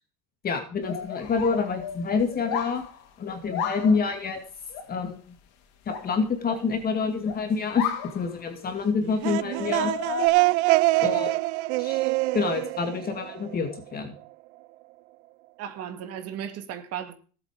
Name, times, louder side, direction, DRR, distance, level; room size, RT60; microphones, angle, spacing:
voice 1, 0.4-2.8 3.2-4.4 4.9-5.2 5.9-7.9 8.1-9.9 11.0-11.3 11.8-12.1 12.3-14.1, left 5 dB, 30° left, 2.2 m, -27 dB
sound 1, 0.8-4.2 4.7-4.9 5.9-6.7 7.2-7.5 7.8-8.8 9.2-10.3, left 8 dB, 60° left, 3.1 m, -34 dB
sound 2, 9.0-13.8, right 21 dB, 80° right, 0.6 m, -24 dB
voice 2, 11.0-11.3 15.6-17.1, right 9 dB, 50° right, 2.3 m, -36 dB
18.0 x 8.0 x 5.0 m
supercardioid pair, 135°, 33 cm